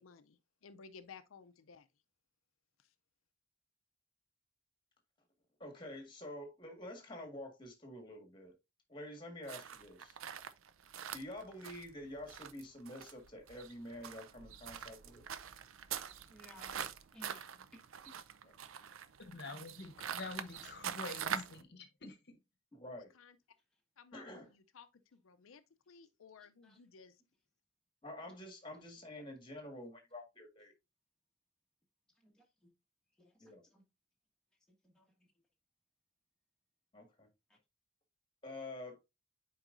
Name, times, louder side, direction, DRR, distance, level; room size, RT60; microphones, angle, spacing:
voice 1, 0.0-1.9 23.0-23.4 24.0-27.2, left 5 dB, 90° left, 0.5 m, -57 dB
voice 2, 5.6-8.5 8.9-10.2 11.1-15.2 22.7-23.1 24.1-24.5 28.0-30.7 33.4-33.6 36.9-37.3 38.4-39.0, left 1 dB, 25° left, 1.7 m, -48 dB
sound 1, 9.5-21.6, right 8 dB, 85° right, 0.5 m, -44 dB
voice 3, 16.3-18.2 23.7-23.8 26.4-26.8 28.2-28.4 28.7-28.9 29.7-29.8 30.1-30.2 32.1-32.7 33.1-33.8 34.8-35.3 37.5-37.6, left 1 dB, 5° left, 1.5 m, -62 dB
voice 4, 19.2-22.4, left 3 dB, 55° left, 1.0 m, -47 dB
8.9 x 4.7 x 2.5 m
head